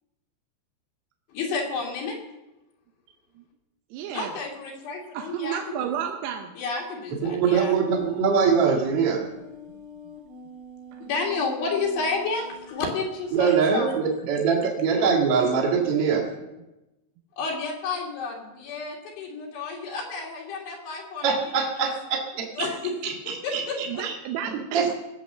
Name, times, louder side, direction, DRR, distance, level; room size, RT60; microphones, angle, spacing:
voice 1, 1.3-2.2 4.1-6.1 6.6-7.8 11.0-14.0 17.4-21.3 21.8-21.9 22.6-23.0 23.3-24.1, left 4 dB, 75° left, -2 dB, 4.1 m, -31 dB
voice 2, 3.9-4.3 5.1-6.6 23.9-24.9, right 9 dB, 80° right, 4 dB, 2.9 m, -31 dB
voice 3, 7.2-9.2 13.3-16.3 21.2-22.5 23.0-24.1 24.7-24.9, right 6 dB, 40° right, -2 dB, 2.6 m, -23 dB
sound 1, 7.5-12.7, left 1 dB, 60° right, 4.6 m, -45 dB
19.5 x 7.7 x 6.7 m, 1.0 s
omnidirectional pair, 5.0 m